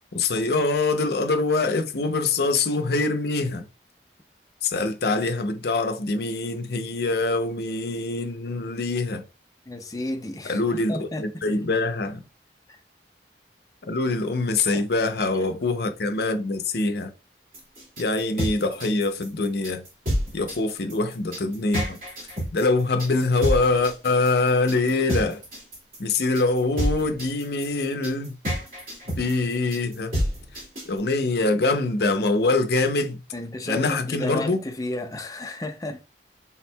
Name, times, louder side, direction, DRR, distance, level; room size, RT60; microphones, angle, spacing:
voice 1, 0.1-3.6 4.6-9.2 10.4-12.2 13.8-17.1 18.0-19.8 20.3-22.0 22.5-25.4 26.0-28.3 29.1-30.1 30.9-33.2 33.7-34.6, left 3 dB, 60° left, 0.6 m, -24 dB
voice 2, 9.7-10.6 10.9-11.4 12.7-12.8 14.7-14.8 33.3-36.0, left 1 dB, 20° left, 0.4 m, -32 dB
sound 1, 17.5-31.0, equal, 50° right, 2.3 m, -29 dB
4.4 x 3.6 x 2.2 m
head